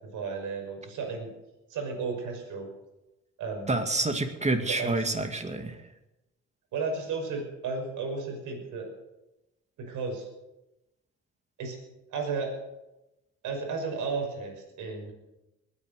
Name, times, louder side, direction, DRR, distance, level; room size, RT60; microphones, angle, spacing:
voice 1, 0.0-1.3 1.7-2.7 3.4-3.8 4.6-5.1 6.7-8.9 9.8-10.3 11.6-11.8 12.1-12.5 13.4-15.1, right 4 dB, 85° right, 2 dB, 6.1 m, -33 dB
voice 2, 3.7-5.7, right 2 dB, 20° right, 6 dB, 2.4 m, -28 dB
20.5 x 9.9 x 6.8 m, 0.95 s
cardioid pair, 90°, 30 cm